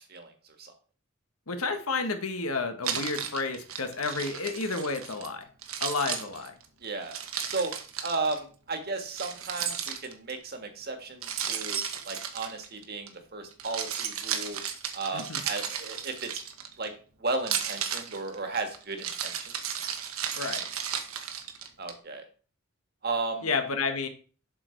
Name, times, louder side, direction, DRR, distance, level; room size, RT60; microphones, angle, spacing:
voice 1, 1.5-5.4 5.8-6.5 15.1-15.4 20.4-20.6 23.4-24.1, left 4 dB, 90° left, 7 dB, 1.4 m, -31 dB
Keys jangling, 2.8-5.3 5.6-8.4 9.2-10.4 11.2-13.1 13.5-16.9 17.4-21.9, right 8 dB, 80° right, 1.2 m, -34 dB
voice 2, 6.8-7.2 7.4-7.7 8.0-11.8 12.0-14.6 14.9-16.3 16.8-16.9 17.2-19.5 21.8-22.2 23.0-23.5, right 3 dB, 45° right, 6 dB, 1.6 m, -34 dB
7.6 x 6.6 x 4.5 m, 0.39 s
head